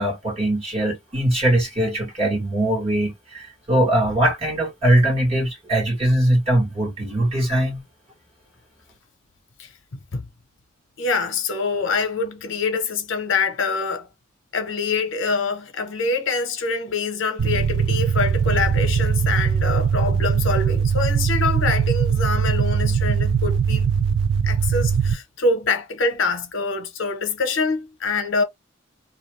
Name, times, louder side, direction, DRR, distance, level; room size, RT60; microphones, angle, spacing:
voice 1, 0.0-7.8, right 1 dB, 30° right, 1.2 m, -21 dB
voice 2, 11.0-14.1 14.5-23.9 24.4-28.4, left 4 dB, 65° left, 0.8 m, -25 dB
sound 1, 17.4-25.1, right 6 dB, 65° right, 0.3 m, -20 dB
2.3 x 2.2 x 3.1 m
head